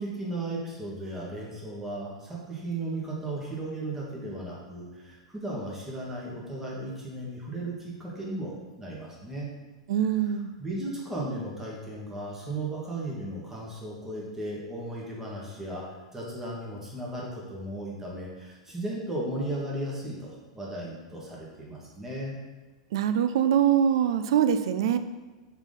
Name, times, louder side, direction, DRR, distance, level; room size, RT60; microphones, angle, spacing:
voice 1, 0.0-9.5 10.0-10.3 10.6-15.9 16.1-22.3, right 1 dB, 10° right, -4 dB, 1.8 m, -35 dB
voice 2, 9.9-10.5 22.9-25.0, right 9 dB, 60° right, 10 dB, 0.4 m, -23 dB
6.9 x 4.0 x 3.8 m, 1.3 s
figure-of-eight pair, 95°, 3 cm